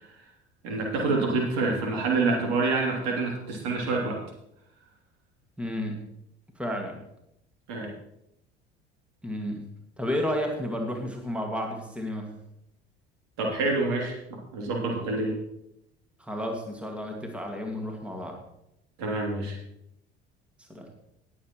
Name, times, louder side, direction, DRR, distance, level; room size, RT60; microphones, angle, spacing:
voice 1, 0.6-4.2 7.7-7.9 13.4-14.1 14.5-15.3 19.0-19.6, right 3 dB, 60° right, 0 dB, 3.1 m, -27 dB
voice 2, 5.6-6.0 6.6-7.0 9.2-9.6 10.0-12.4 16.2-18.4 20.6-20.9, left 1 dB, 5° right, 2 dB, 2.1 m, -32 dB
20.0 x 7.6 x 3.1 m, 0.81 s
figure-of-eight pair, 60°, 32 cm